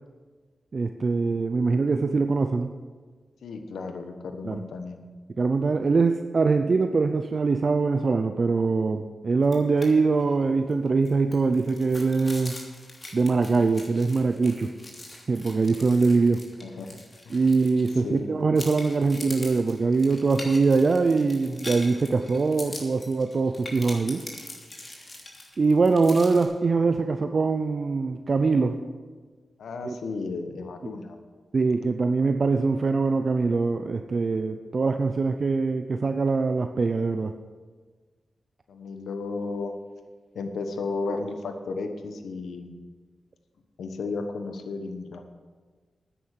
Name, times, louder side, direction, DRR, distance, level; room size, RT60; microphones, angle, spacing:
voice 1, 0.7-2.7 4.4-4.6 5.4-12.6 13.1-14.7 15.3-16.4 17.3-24.2 25.6-28.8 29.8-30.0 31.5-37.3, right 4 dB, 55° right, 7 dB, 0.5 m, -23 dB
voice 2, 3.4-5.0 16.6-17.5 18.0-18.3 29.6-31.2 38.7-39.7 40.3-42.8 43.8-45.2, left 3 dB, 85° left, 6 dB, 1.1 m, -34 dB
sound 1, 9.4-9.9 10.2-10.3 10.7-18.2 18.6-26.5, left 2 dB, 35° left, 3.1 m, -42 dB
9.8 x 9.3 x 6.6 m, 1.5 s
cardioid pair, 55°, 0 cm